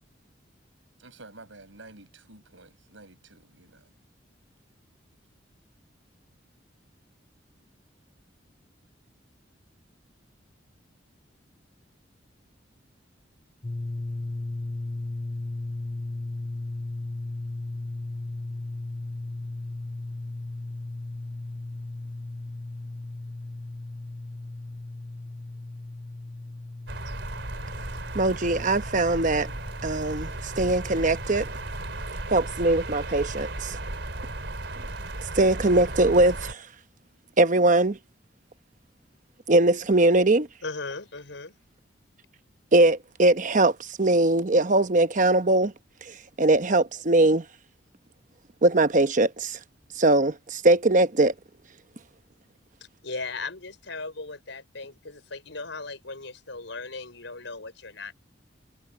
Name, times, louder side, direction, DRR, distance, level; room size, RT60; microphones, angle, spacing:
voice 1, 1.0-3.9, right 2 dB, 90° right, 6.0 m, -50 dB
sound 1, 13.6-32.9, left 2 dB, 20° left, 0.4 m, -36 dB
sound 2, 26.9-36.5, right 2 dB, 65° right, 4.3 m, -35 dB
voice 2, 28.1-29.5 29.8-31.5 32.3-33.8 35.4-36.7 37.4-38.0 39.5-40.5 42.7-45.7 46.0-47.4 48.6-49.6 50.0-51.3, right 2 dB, 40° right, 0.9 m, -21 dB
voice 3, 40.6-41.6 53.0-58.1, left 3 dB, 75° left, 5.2 m, -37 dB
head